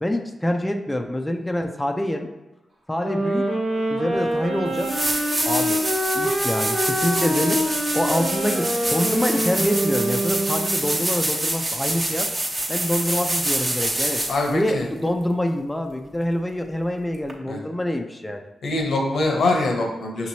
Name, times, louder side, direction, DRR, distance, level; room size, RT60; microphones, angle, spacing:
voice 1, 0.0-2.3 2.9-3.5 3.9-4.9 5.4-5.8 6.1-12.3 12.7-14.2 14.5-18.4, left 1 dB, 15° left, 4 dB, 0.4 m, -26 dB
sound 1, 3.0-11.0, right 1 dB, 60° right, 1.2 m, -25 dB
sound 2, 4.3-4.4 4.7-14.5 17.3-17.4, right 1 dB, 35° right, 1.0 m, -26 dB
voice 2, 14.3-14.9 17.5-17.6 18.6-20.3, left 2 dB, 75° left, 1 dB, 0.8 m, -23 dB
5.8 x 3.0 x 2.8 m, 1.0 s
cardioid pair, 55°, 0 cm